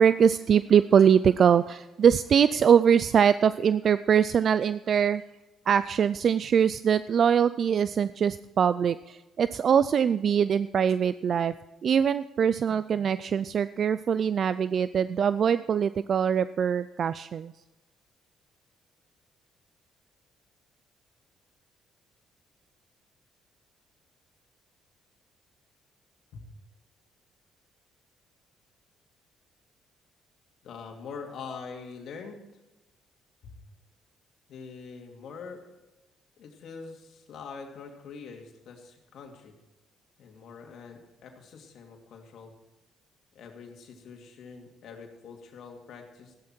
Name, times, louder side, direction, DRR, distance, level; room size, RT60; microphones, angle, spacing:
voice 1, 0.0-5.2 5.7-11.5 11.8-17.5, right 7 dB, 55° right, 15 dB, 0.4 m, -23 dB
voice 2, 30.6-32.4 33.4-33.6 34.5-35.6 36.4-39.5 40.2-42.5 43.3-46.3, left 5 dB, 70° left, 2 dB, 2.7 m, -44 dB
15.0 x 12.0 x 4.5 m, 1.0 s
supercardioid pair, 65°, 0 cm